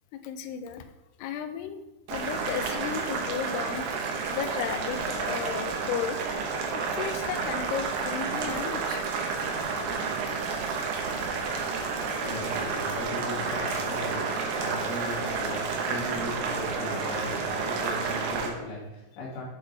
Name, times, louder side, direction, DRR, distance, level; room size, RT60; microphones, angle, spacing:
voice 1, 0.1-0.9 1.2-1.8 2.1-3.9 4.3-6.2 6.7-9.0, left 8 dB, 85° left, 9 dB, 2.6 m, -34 dB
Boiling, 2.1-18.5, right 4 dB, 80° right, 3.2 m, -30 dB
voice 2, 11.9-14.3 14.6-19.4, left 1 dB, 70° left, -5 dB, 4.0 m, -38 dB
9.0 x 7.3 x 3.3 m, 1.0 s
omnidirectional pair, 4.7 m